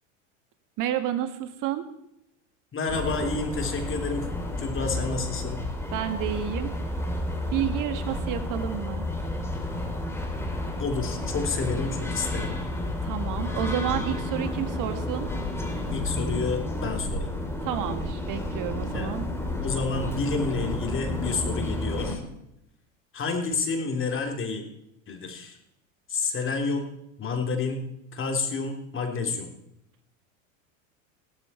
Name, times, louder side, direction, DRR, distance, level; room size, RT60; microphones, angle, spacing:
voice 1, 0.8-1.8 5.9-6.7 7.5-9.0 13.0-15.3 17.6-19.3, right 11 dB, 55° right, 9 dB, 1.8 m, -30 dB
voice 2, 2.7-4.3 4.6-5.6 10.8-12.6 15.9-17.3 18.9-19.2 19.6-22.2 23.1-24.6 25.1-25.6 26.1-26.9 27.2-27.8 28.1-29.5, left 4 dB, 30° left, 4 dB, 3.5 m, -29 dB
sound 1, 2.9-22.2, left 2 dB, 5° left, 3.4 m, -31 dB
17.0 x 13.0 x 4.4 m, 0.80 s
hypercardioid pair, 95°, 38 cm